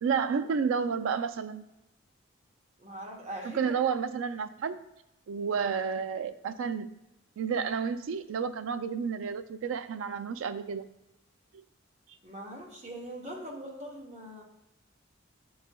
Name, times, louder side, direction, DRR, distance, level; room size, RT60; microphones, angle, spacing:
voice 1, 0.0-1.6 3.4-4.8 5.3-6.9 7.4-10.9, right 6 dB, 80° right, 11 dB, 0.3 m, -31 dB
voice 2, 2.8-3.6 12.2-14.4, right 1 dB, 35° right, -2 dB, 0.9 m, -41 dB
7.3 x 3.1 x 2.2 m, 0.92 s
head